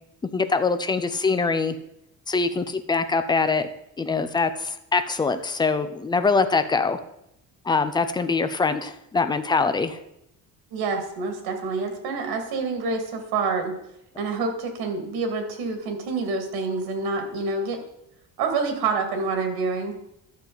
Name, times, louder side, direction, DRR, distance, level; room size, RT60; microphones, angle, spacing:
voice 1, 0.3-1.8 2.3-3.7 4.0-7.0 7.6-10.0, left 4 dB, 15° left, 10 dB, 0.4 m, -23 dB
voice 2, 10.7-13.8 14.2-17.8 18.4-20.0, right 4 dB, 90° right, 5 dB, 2.0 m, -27 dB
11.5 x 6.8 x 3.9 m, 0.81 s
cardioid pair, 165°, 36 cm